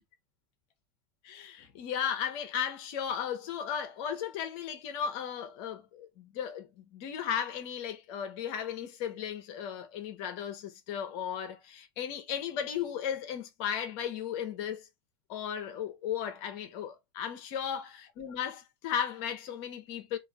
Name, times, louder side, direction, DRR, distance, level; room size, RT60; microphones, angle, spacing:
voice 1, 1.2-14.9 15.3-20.2, left 8 dB, 60° left, 1.1 m, -35 dB
3.8 x 2.7 x 4.7 m
hypercardioid pair, 95°, 13 cm